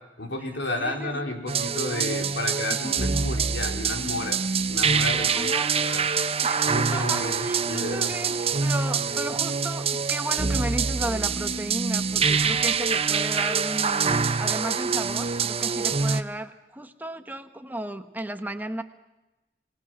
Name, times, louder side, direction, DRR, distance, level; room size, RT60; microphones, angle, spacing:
voice 1, 0.2-4.4 4.7-5.5 5.8-6.0 6.7-8.1, left 2 dB, 90° left, 3 dB, 4.0 m, -32 dB
voice 2, 0.8-1.2 2.7-2.9 5.3-5.9 6.4-18.8, right 1 dB, 10° right, 8 dB, 1.2 m, -34 dB
sound 1, 1.5-16.2, right 5 dB, 35° right, 0.8 m, -25 dB
26.0 x 20.0 x 6.2 m, 1.0 s
head